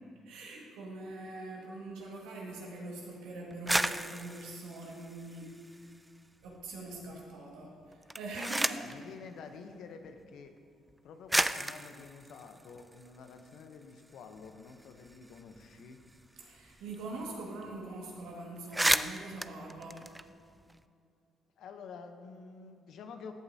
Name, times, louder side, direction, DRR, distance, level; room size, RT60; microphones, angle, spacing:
voice 1, 0.3-5.8 6.4-9.1 16.4-20.1, right 2 dB, 85° right, -2 dB, 1.8 m, -43 dB
sound 1, 3.5-6.1 6.4-7.1 7.9-9.0 10.0-10.1 10.9-11.0 11.3-13.6 14.0-14.1 14.3-16.9 17.2-17.3 17.6-17.9 18.2-18.3 18.6-20.8, right 1 dB, 10° right, 0.3 m, -34 dB
voice 2, 8.7-10.5 11.0-16.0 21.6-23.3, left 5 dB, 75° left, 6 dB, 0.8 m, -49 dB
13.5 x 8.0 x 2.8 m, 2.4 s
supercardioid pair, 70°, 0 cm